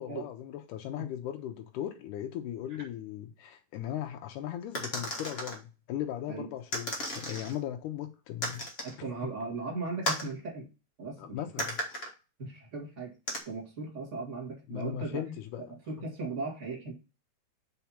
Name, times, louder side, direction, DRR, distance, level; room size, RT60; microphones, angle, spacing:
voice 1, 0.0-8.6 11.2-11.8 14.7-15.7 16.0-16.1, left 11 dB, 85° left, 2.1 m, -38 dB
sound 1, 4.7-5.6 6.7-7.5 8.4-9.0 10.0-10.3 11.6-12.1 13.3-13.4, equal, 45° left, 0.8 m, -34 dB
voice 2, 8.8-10.7 11.0-11.6 12.4-13.1 13.5-15.2 15.6-16.9, right 3 dB, 25° right, 2.0 m, -37 dB
5.8 x 4.1 x 5.6 m
omnidirectional pair, 3.6 m